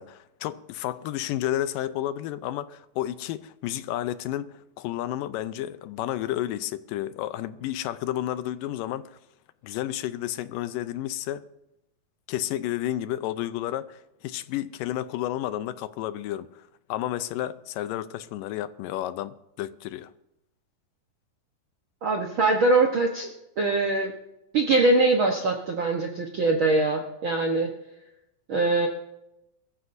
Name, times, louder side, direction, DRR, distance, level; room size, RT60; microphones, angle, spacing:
voice 1, 0.0-9.2 9.6-11.4 12.3-20.1, left 13 dB, 80° left, 2.2 m, -31 dB
voice 2, 22.0-23.3 23.6-24.1 24.5-27.7 28.5-28.9, right 2 dB, 75° right, 1.1 m, -22 dB
22.0 x 14.0 x 2.6 m
omnidirectional pair, 4.0 m